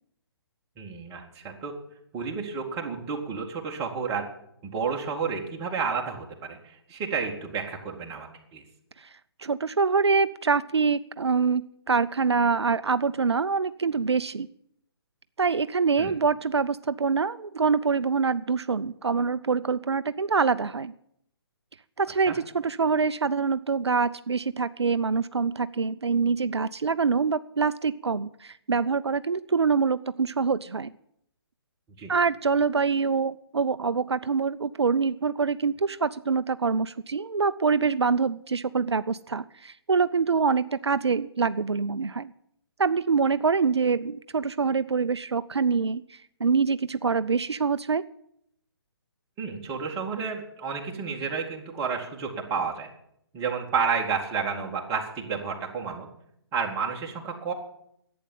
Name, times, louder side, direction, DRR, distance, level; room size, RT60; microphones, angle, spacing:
voice 1, 0.8-1.7 2.1-4.3 4.6-8.6 16.0-16.1 22.3-22.4 32.0-32.1 49.4-52.9 53.3-56.1 56.5-57.5, right 5 dB, 20° right, 0 dB, 2.2 m, -31 dB
voice 2, 9.4-14.5 15.4-20.9 22.0-30.9 32.1-42.3 42.8-48.0, right 5 dB, 80° right, 14 dB, 0.5 m, -25 dB
11.5 x 8.6 x 9.2 m, 0.73 s
figure-of-eight pair, 135°, 14 cm